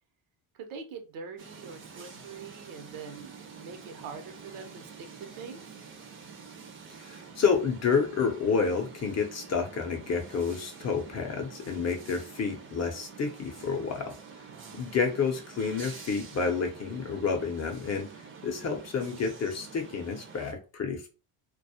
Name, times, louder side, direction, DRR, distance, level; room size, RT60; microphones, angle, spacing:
voice 1, 0.5-3.3 3.6-4.9 5.4-5.6 14.5-14.9, right 5 dB, 75° right, 0.8 m, -43 dB
sound 1, 1.4-20.5, right 5 dB, 25° right, 0.5 m, -47 dB
voice 2, 7.0-14.1 14.8-18.1 18.4-21.1, left 5 dB, 35° left, 0.6 m, -29 dB
2.2 x 2.0 x 2.7 m
cardioid pair, 100°, 50 cm